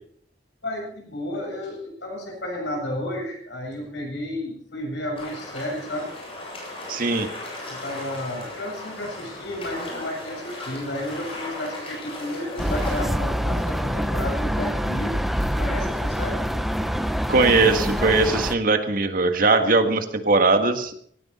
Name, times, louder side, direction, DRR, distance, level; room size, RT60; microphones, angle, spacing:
voice 1, 0.6-6.1 7.7-15.3 15.6-16.5, left 1 dB, 70° left, 0 dB, 7.7 m, -32 dB
sound 1, 5.2-13.0, left 2 dB, 30° left, 7.8 m, -36 dB
voice 2, 6.9-7.3 17.3-20.9, right 3 dB, 50° right, 7 dB, 1.7 m, -20 dB
sound 2, 12.6-18.5, equal, ahead, 0.8 m, -25 dB
18.0 x 16.5 x 4.3 m, 0.63 s
head